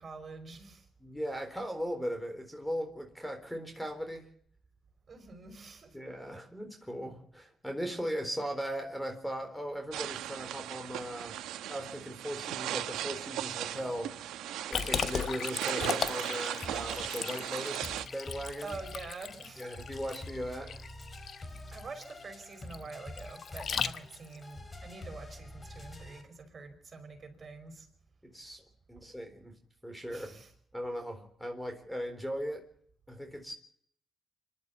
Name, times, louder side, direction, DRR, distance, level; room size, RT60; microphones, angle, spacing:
voice 1, 0.0-0.9 5.1-6.0 11.2-11.5 18.6-19.7 21.7-27.9 30.1-30.5, right 3 dB, 40° right, 5.4 m, -46 dB
voice 2, 1.0-4.3 5.9-11.4 11.7-14.2 14.7-17.8 18.1-18.7 19.6-20.8 28.2-28.6 28.9-29.6 29.8-30.3 30.7-32.7 33.1-33.5, equal, 5° left, 3.9 m, -38 dB
sound 1, 9.9-18.1, right 12 dB, 85° right, 1.1 m, -37 dB
Liquid, 14.7-24.4, left 7 dB, 55° left, 1.1 m, -37 dB
sound 2, 16.6-26.2, left 1 dB, 25° left, 3.6 m, -47 dB
25.5 x 12.0 x 8.6 m
cardioid pair, 90°, 0 cm